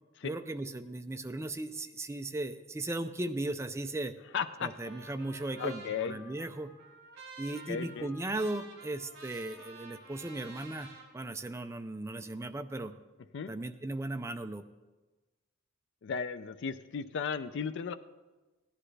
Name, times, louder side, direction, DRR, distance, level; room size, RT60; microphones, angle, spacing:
voice 1, 0.2-4.1 4.6-6.7 7.4-10.9 11.1-12.9 13.5-14.6, right 2 dB, 15° right, 9 dB, 0.4 m, -37 dB
voice 2, 4.3-4.7 5.6-6.2 7.7-8.1 13.3-13.5 16.0-17.9, left 6 dB, 60° left, 11 dB, 0.4 m, -35 dB
Trumpet, 4.3-11.1, right 2 dB, 55° right, 2.8 m, -51 dB
16.0 x 10.0 x 3.3 m, 1.2 s
head